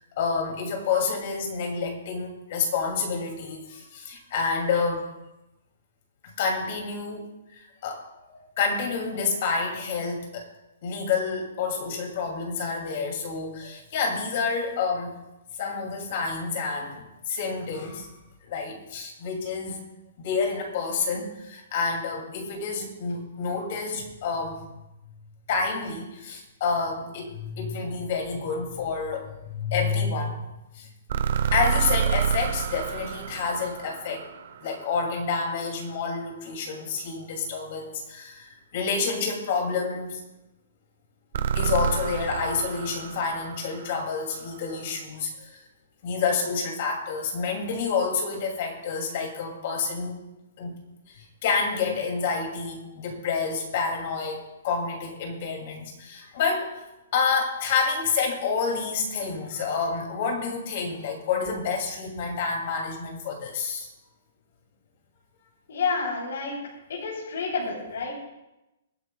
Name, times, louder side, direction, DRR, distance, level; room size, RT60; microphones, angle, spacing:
voice 1, 0.0-5.1 6.2-10.5 10.8-15.2 15.6-18.1 18.5-19.8 20.2-24.6 25.5-30.4 30.7-30.9 31.5-34.3 34.6-40.2 41.5-45.6 46.0-50.2 50.6-50.8 51.1-56.8 57.1-63.9, left 5 dB, 35° left, 1 dB, 2.5 m, -29 dB
sound 1, 31.1-35.2 41.3-44.5, right 7 dB, 50° right, 0.7 m, -28 dB
voice 2, 65.7-66.5 66.9-68.1, left 4 dB, 65° left, -4 dB, 3.2 m, -29 dB
24.0 x 9.4 x 2.3 m, 0.96 s
hypercardioid pair, 175°, 0 cm